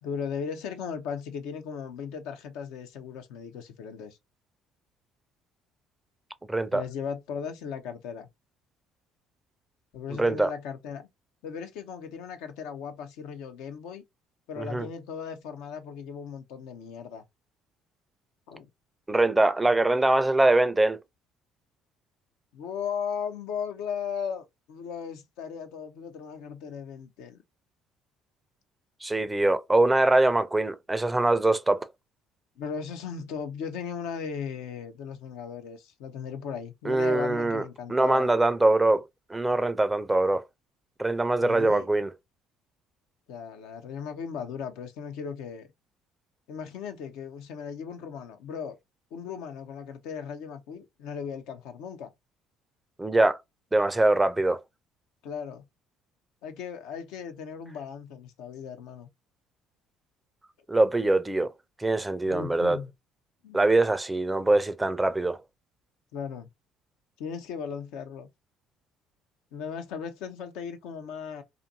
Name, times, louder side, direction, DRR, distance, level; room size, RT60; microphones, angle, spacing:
voice 1, 0.0-4.2 6.7-8.3 9.9-11.1 11.4-14.0 14.5-17.2 18.5-18.7 22.5-27.4 32.6-38.3 41.4-41.9 43.3-45.7 46.5-48.8 49.1-52.1 55.2-55.6 56.4-59.1 62.3-62.9 63.4-63.6 66.1-66.5 67.2-68.3 69.5-71.4, left 7 dB, 70° left, 0.5 m, -37 dB
voice 2, 6.5-6.8 10.2-10.5 14.6-14.9 19.1-21.0 29.0-31.9 36.8-37.6 37.9-39.0 39.3-40.4 41.0-42.1 53.0-53.4 53.7-54.6 60.7-61.5 61.8-62.8 63.5-65.4, right 2 dB, 15° right, 0.4 m, -23 dB
2.6 x 2.5 x 2.6 m
hypercardioid pair, 55°, 0 cm